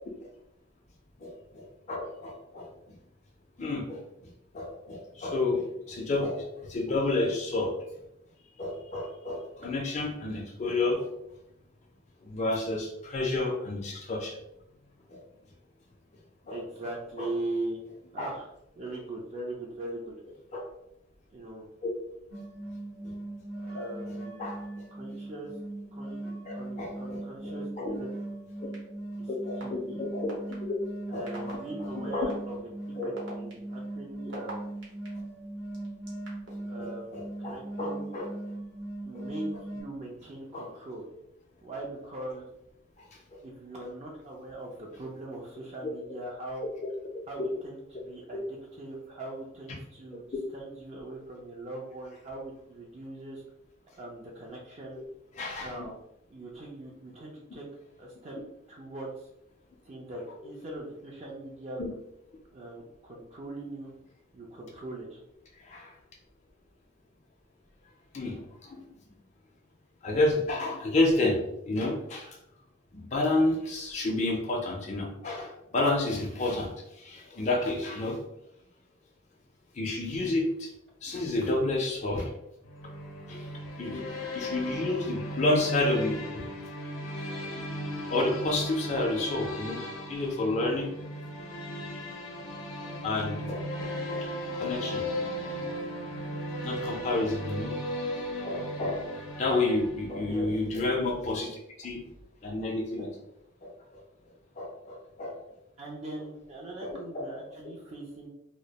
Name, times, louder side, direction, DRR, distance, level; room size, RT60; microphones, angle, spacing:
voice 1, 1.2-2.9 3.6-4.0 4.5-7.7 8.6-11.1 12.2-14.4 15.1-15.2 16.5-16.6 17.2-17.3 18.2-18.3 20.5-20.6 21.8-21.9 23.0-23.1 23.7-23.9 24.4-24.9 26.5-28.0 28.6-28.7 29.3-30.3 30.6-30.7 31.1-32.3 33.0-33.1 36.8-38.3 39.1-39.2 40.5-40.7 43.0-43.1 43.3-43.4 48.3-48.4 55.3-55.7 61.8-61.9 65.6-65.9 68.1-68.9 70.0-72.4 72.9-78.2 79.7-80.7 81.0-82.3 83.3-86.5 87.3-87.4 88.1-89.8 90.1-90.9 93.0-94.3 94.5-95.5 96.6-97.8 98.1-102.0 102.4-103.2 103.6-104.0 104.6-105.4 106.8-107.0, left 2 dB, 35° left, -1 dB, 0.4 m, -30 dB
voice 2, 16.5-17.8 18.1-18.5 18.8-20.1 21.3-21.7 23.6-24.5 24.9-25.6 25.9-28.1 29.2-29.3 29.6-30.1 31.1-32.6 33.0-34.6 36.7-38.1 39.0-41.0 41.6-42.4 43.4-46.7 47.3-50.2 50.5-53.4 54.0-55.0 55.6-56.0 56.3-57.6 58.0-58.4 58.7-59.3 59.8-61.8 62.5-63.9 64.3-65.2 100.2-100.5 105.8-108.3, right 2 dB, 30° right, -2 dB, 0.4 m, -40 dB
sound 1, 22.3-39.8, right 1 dB, 85° right, 0.9 m, -39 dB
sound 2, 28.7-28.8 29.6-29.7 30.3-30.5 31.3-31.5 32.3-32.4 33.0-35.1 35.7-36.5, right 2 dB, 60° right, 0.7 m, -42 dB
sound 3, 82.6-100.4, equal, 85° left, 0.5 m, -36 dB
2.2 x 2.0 x 2.8 m, 0.81 s
head